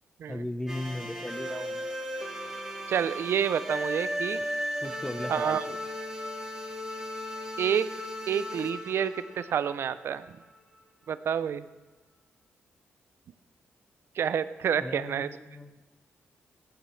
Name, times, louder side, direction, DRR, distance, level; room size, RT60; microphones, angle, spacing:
voice 1, 0.3-1.9 4.8-5.8 14.8-15.8, left 1 dB, 15° left, 10 dB, 0.8 m, -37 dB
sound 1, 0.7-10.6, equal, 10° right, 2.2 m, -36 dB
voice 2, 2.9-4.4 5.3-5.6 7.6-7.9 8.3-10.3 11.1-11.6 14.2-15.3, right 8 dB, 65° right, 14 dB, 0.4 m, -28 dB
15.0 x 11.5 x 3.2 m, 1.2 s
cardioid pair, 80°, 4 cm